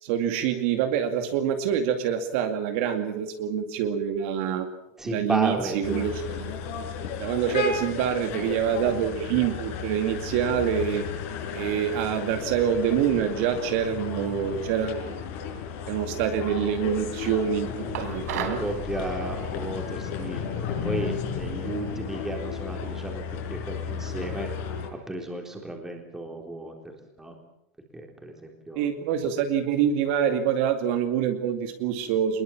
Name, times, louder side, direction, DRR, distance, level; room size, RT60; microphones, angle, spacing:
voice 1, 0.0-4.7 5.0-6.5 7.2-11.0 11.5-15.2 15.9-18.6 28.7-32.4, right 8 dB, 50° right, 6 dB, 2.4 m, -26 dB
voice 2, 5.0-6.1 16.1-16.2 17.9-18.0 18.3-23.2 23.5-24.5 25.1-26.7 27.2-27.3 27.9-28.3 28.7-28.9, right 2 dB, 5° right, 2 dB, 3.9 m, -33 dB
sound 1, 5.8-24.9, left 7 dB, 50° left, 5.6 m, -34 dB
sound 2, 17.9-18.7, right 8 dB, 75° right, 4.2 m, -32 dB
23.0 x 21.5 x 7.4 m, 0.84 s
supercardioid pair, 170°, 8 cm